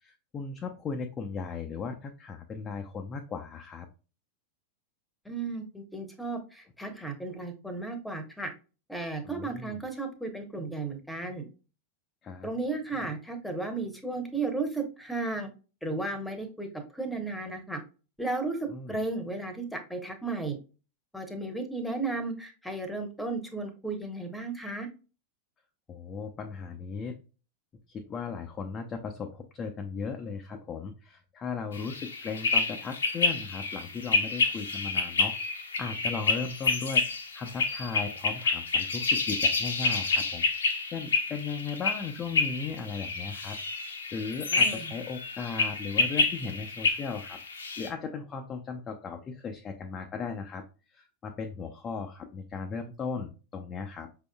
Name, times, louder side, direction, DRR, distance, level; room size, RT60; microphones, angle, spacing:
voice 1, 0.0-3.9 9.2-9.8 12.2-12.5 18.7-18.9 25.9-27.2 27.9-43.6 43.8-47.4 47.8-50.6 50.9-54.1, left 5 dB, 25° left, 4 dB, 0.6 m, -37 dB
voice 2, 5.2-8.5 8.9-11.5 12.4-15.5 15.8-17.8 18.2-18.6 18.9-20.6 21.1-24.9 44.5-44.9, right 3 dB, 5° left, 6 dB, 1.0 m, -34 dB
sound 1, 31.7-47.9, left 4 dB, 70° left, 0.9 m, -29 dB
5.8 x 3.7 x 2.2 m, 0.33 s
figure-of-eight pair, 90°, 0 cm